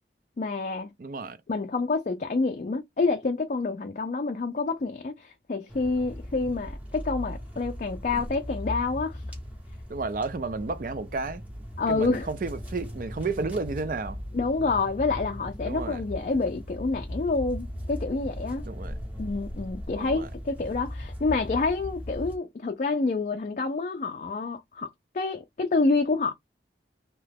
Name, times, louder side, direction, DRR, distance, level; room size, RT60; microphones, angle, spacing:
voice 1, 0.4-0.9 1.5-9.2 11.8-12.3 14.3-18.6 19.2-26.3, left 3 dB, 45° left, 0.4 m, -28 dB
voice 2, 1.0-1.4 9.9-11.4 11.9-14.2 15.6-16.0 18.6-18.9 19.9-20.3, right 3 dB, 50° right, 0.4 m, -32 dB
sound 1, 5.7-22.4, equal, 10° right, 1.0 m, -38 dB
2.8 x 2.3 x 3.3 m
head